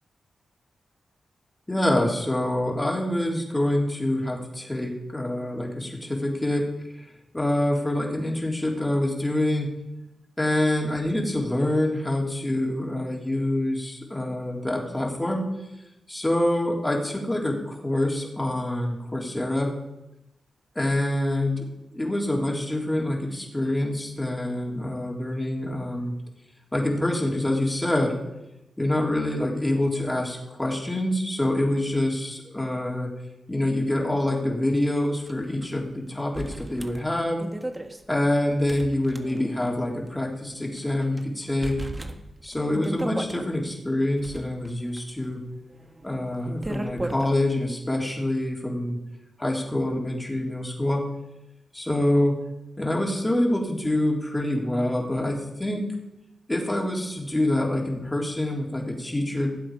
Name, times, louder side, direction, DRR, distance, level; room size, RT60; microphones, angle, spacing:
voice 1, 1.7-6.7 7.0-9.7 10.4-15.4 16.1-19.7 20.8-21.7 21.9-26.1 26.7-28.2 28.8-33.1 33.5-37.4 38.1-41.7 42.4-45.4 46.0-49.0 49.4-51.0 51.7-52.4 52.8-55.8 56.5-59.5, left 1 dB, 15° left, -1 dB, 4.0 m, -26 dB
sound 1, 35.3-35.4 35.6-35.7 36.3-39.7 40.1-40.2 40.8-41.2 41.6-43.5 44.0-47.3, right 1 dB, 20° right, 1.4 m, -36 dB
17.5 x 7.7 x 5.2 m, 0.90 s
cardioid pair, 50°, 0 cm